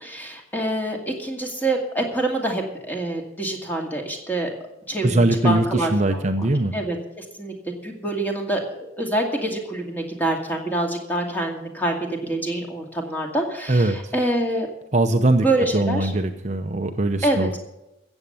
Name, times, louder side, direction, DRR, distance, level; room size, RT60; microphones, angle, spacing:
voice 1, 0.0-4.5 4.9-7.5 7.8-14.7 15.4-16.1 17.2-17.6, right 1 dB, 10° left, 1 dB, 2.3 m, -26 dB
voice 2, 5.0-6.7 13.7-14.0 14.9-15.5 15.7-17.6, right 2 dB, 35° right, 6 dB, 0.7 m, -21 dB
14.5 x 8.1 x 7.1 m, 0.90 s
head